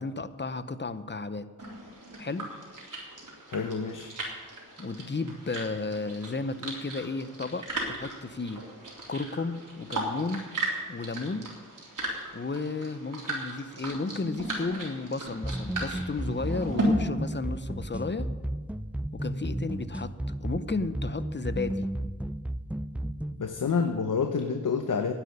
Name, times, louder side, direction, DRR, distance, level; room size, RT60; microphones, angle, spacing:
voice 1, 0.0-1.5 2.2-2.5 4.8-8.6 9.1-10.4 10.9-11.5 12.3-18.3 19.1-20.1 20.4-21.9, left 3 dB, 35° left, 12 dB, 0.8 m, -33 dB
sound 1, 1.6-16.8, right 2 dB, 75° right, 3.6 m, -37 dB
voice 2, 3.5-4.1 23.4-25.1, left 5 dB, 75° left, 7 dB, 0.9 m, -28 dB
sound 2, 15.4-23.5, right 1 dB, 5° right, 0.4 m, -33 dB
10.5 x 7.8 x 9.7 m, 1.4 s
cardioid pair, 45°, 32 cm